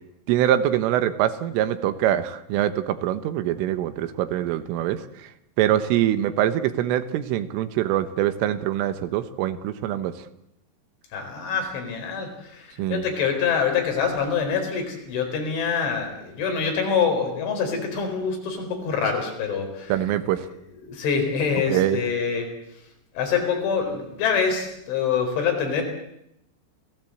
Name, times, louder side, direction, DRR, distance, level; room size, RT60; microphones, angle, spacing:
voice 1, 0.3-5.0 5.6-10.1 12.8-13.0 19.9-20.5 21.7-22.0, right 12 dB, 80° right, 11 dB, 3.7 m, -24 dB
voice 2, 11.1-19.9 20.8-22.5 23.1-25.8, left 6 dB, 70° left, 3 dB, 6.8 m, -25 dB
28.5 x 17.0 x 8.0 m, 0.80 s
omnidirectional pair, 5.7 m